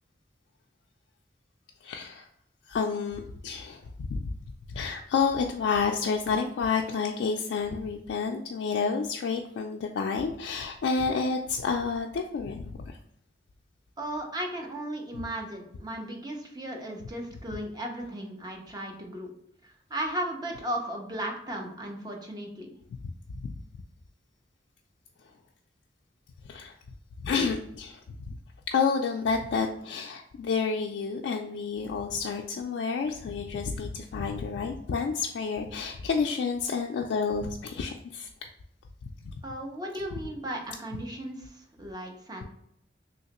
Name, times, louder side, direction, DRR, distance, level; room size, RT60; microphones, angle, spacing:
voice 1, 1.8-2.3 2.7-4.3 4.7-13.0 23.3-23.5 26.5-26.8 27.2-28.0 28.3-28.4 28.7-38.3 39.2-39.4, left 5 dB, 85° left, 1 dB, 0.3 m, -30 dB
voice 2, 14.0-19.3 19.6-22.7 39.4-42.4, right 1 dB, 25° right, 1 dB, 0.6 m, -36 dB
3.1 x 2.8 x 2.9 m, 0.73 s
head